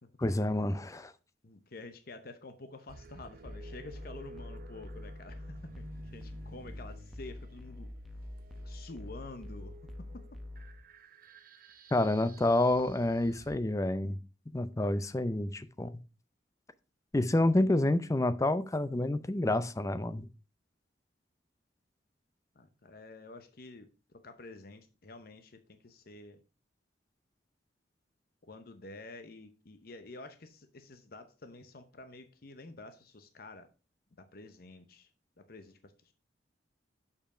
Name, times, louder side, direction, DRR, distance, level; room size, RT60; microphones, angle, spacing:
voice 1, 0.2-1.1 11.9-14.2 14.5-15.9 17.1-20.3, left 1 dB, 20° left, 0.5 m, -28 dB
voice 2, 1.4-7.9 8.6-9.8 10.1-10.3 22.5-26.4 28.4-33.7 34.2-36.1, left 2 dB, 55° left, 0.8 m, -49 dB
sound 1, 2.9-13.6, right 3 dB, 50° right, 0.7 m, -53 dB
sound 2, 3.5-10.8, left 1 dB, ahead, 0.9 m, -46 dB
6.9 x 5.7 x 4.9 m
head